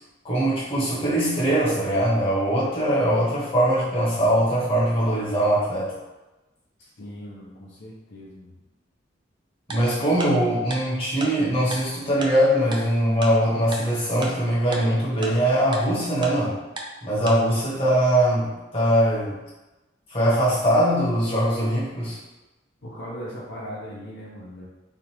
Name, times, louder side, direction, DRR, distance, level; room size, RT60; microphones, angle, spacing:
voice 1, 0.2-6.0 9.7-16.6 17.0-19.4 20.1-22.2, right 1 dB, 30° left, -8 dB, 1.4 m, -22 dB
voice 2, 6.8-8.6 22.8-24.7, equal, 70° left, -5 dB, 0.8 m, -39 dB
Tick-tock, 9.7-9.8 10.2-10.3 10.7-10.8 11.2-11.3 11.7-11.8 12.2-12.3 12.7-12.8 13.2-13.3 13.7-13.8 14.2-14.3 14.7-14.8 15.2-15.3 15.7-15.8 16.2-16.3 16.8-16.9 17.3-17.4, right 2 dB, 25° right, 0.5 m, -32 dB
3.6 x 2.5 x 4.5 m, 1.1 s
head